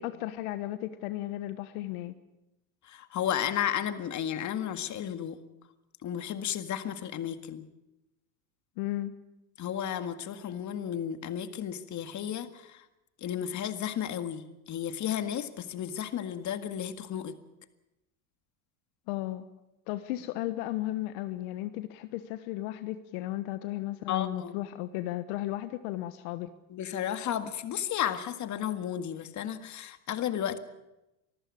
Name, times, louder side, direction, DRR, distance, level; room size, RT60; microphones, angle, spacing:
voice 1, 0.0-2.1 8.8-9.1 19.1-19.5 19.9-26.5, left 15 dB, 70° left, 11 dB, 1.4 m, -35 dB
voice 2, 2.8-5.4 6.0-7.7 9.6-12.9 13.2-17.4 24.1-24.6 26.7-30.6, left 10 dB, 40° left, 9 dB, 1.9 m, -33 dB
24.5 x 14.5 x 8.6 m, 0.96 s
supercardioid pair, 110°, 46 cm